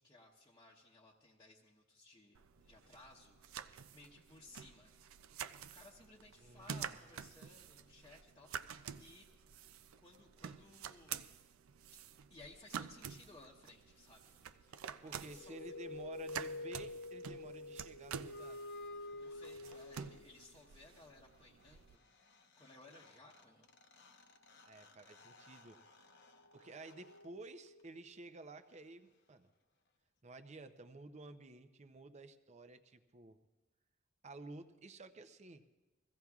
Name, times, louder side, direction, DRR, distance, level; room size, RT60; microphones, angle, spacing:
voice 1, 0.0-4.9 5.7-9.3 10.0-11.2 12.3-14.2 15.0-15.7 19.2-22.0 22.6-23.7, left 2 dB, 20° left, -5 dB, 0.9 m, -60 dB
sound 1, 2.3-22.0, right 8 dB, 80° right, 0.5 m, -49 dB
voice 2, 6.4-6.8 15.0-18.6 24.7-25.8 26.5-29.5 30.2-33.4 34.2-35.6, right 2 dB, 35° right, 9 dB, 0.6 m, -53 dB
sound 2, 15.1-20.4 22.3-22.4 22.6-28.1, left 2 dB, 55° left, 0.8 m, -49 dB
22.5 x 16.0 x 2.4 m, 1.2 s
head